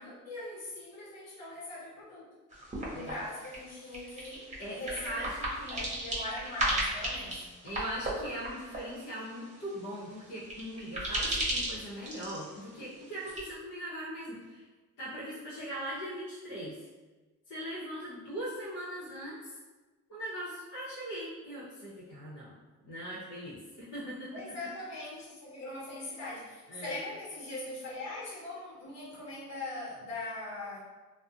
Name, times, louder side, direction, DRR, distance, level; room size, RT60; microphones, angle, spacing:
voice 1, 0.0-2.3 2.9-5.3 5.7-7.5 24.3-30.8, left 2 dB, 60° left, -6 dB, 1.2 m, -41 dB
sound 1, 2.5-13.4, right 1 dB, 25° right, 0.7 m, -37 dB
voice 2, 4.6-5.8 7.6-14.6 15.0-16.8 17.5-19.5 20.1-22.5 22.8-24.3 26.7-27.0, right 1 dB, 85° left, -9 dB, 0.8 m, -40 dB
2.4 x 2.1 x 2.5 m, 1.2 s
cardioid pair, 90°, 30 cm